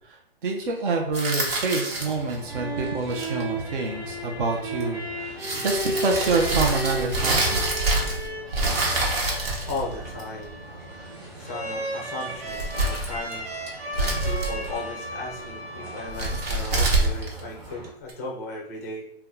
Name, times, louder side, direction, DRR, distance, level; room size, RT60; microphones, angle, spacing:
voice 1, 0.1-7.7, right 3 dB, 55° right, 0 dB, 0.7 m, -27 dB
sound 1, 1.1-2.3 3.0-3.4 4.8-4.9 5.4-8.3 8.5-10.4 12.4-13.3 13.7-14.7 16.1-18.1, right 2 dB, 75° right, 1.2 m, -26 dB
sound 2, 1.9-17.9, right 2 dB, 20° right, 0.8 m, -43 dB
sound 3, 2.2-16.9, right 1 dB, 90° right, 1.0 m, -35 dB
voice 2, 9.7-10.6 11.4-13.4 14.0-19.1, left 2 dB, 15° left, -2 dB, 0.4 m, -36 dB
2.8 x 2.3 x 3.6 m, 0.67 s
hypercardioid pair, 155°, 31 cm